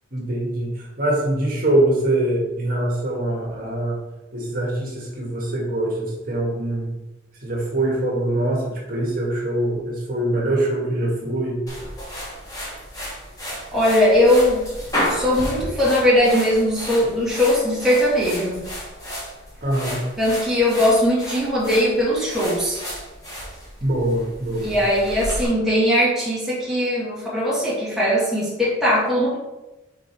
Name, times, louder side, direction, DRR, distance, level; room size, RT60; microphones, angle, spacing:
voice 1, 0.1-4.0 4.3-6.9 7.4-11.6 19.6-20.0 23.8-24.8, right 1 dB, 45° right, -3 dB, 1.7 m, -23 dB
sound 1, 11.7-25.5, equal, 20° left, 1.8 m, -32 dB
voice 2, 13.7-14.6 15.1-18.7 20.2-22.8 24.6-29.4, left 1 dB, ahead, -8 dB, 1.8 m, -19 dB
5.1 x 4.6 x 4.5 m, 1.1 s
head